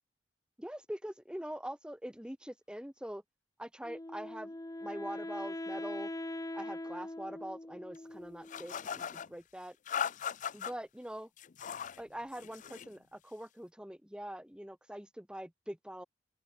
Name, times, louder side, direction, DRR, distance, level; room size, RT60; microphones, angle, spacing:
voice 1, 0.6-3.2 3.6-4.5 4.8-6.1 6.5-9.8 10.5-11.3 12.0-16.0, equal, 5° right, 1.3 m, -43 dB
Wind instrument woodwind instrument, 3.8-8.9, left 1 dB, 20° left, 0.8 m, -42 dB
sound 1, 8.5-9.3 9.9-10.7 11.4-12.0 12.3-12.9, left 8 dB, 45° left, 0.4 m, -38 dB
open air
head